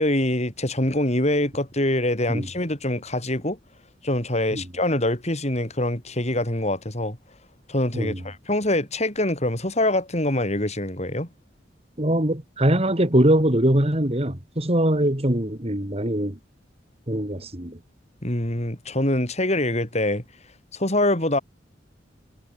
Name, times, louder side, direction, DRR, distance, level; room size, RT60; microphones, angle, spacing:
voice 1, 0.0-3.6 4.0-7.2 7.7-11.3 18.2-20.2 20.7-21.4, left 1 dB, 35° left, 6.1 m, -24 dB
voice 2, 12.0-16.4 17.1-17.8, right 1 dB, 35° right, 3.1 m, -22 dB
head